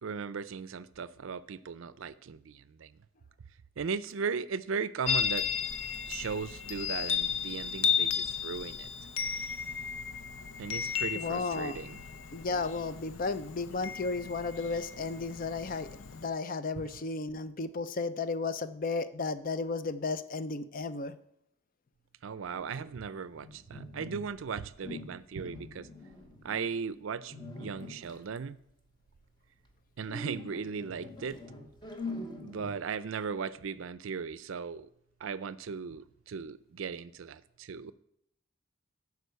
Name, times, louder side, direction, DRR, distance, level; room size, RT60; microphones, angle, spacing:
voice 1, 0.0-2.9 3.8-5.5 6.1-8.9 10.6-12.0 16.8-16.9 22.2-25.9 26.4-28.6 30.0-31.4 32.4-34.9 35.2-37.9, right 5 dB, 75° right, 0.4 m, -37 dB
Chime, 5.1-16.3, left 7 dB, 85° left, 0.7 m, -34 dB
voice 2, 11.1-11.8 12.3-21.1, left 3 dB, 45° left, 0.5 m, -34 dB
sound 1, 22.4-24.5 24.8-26.7 27.3-28.4 30.1-33.1, left 2 dB, 20° left, 1.0 m, -44 dB
11.0 x 4.8 x 6.8 m
head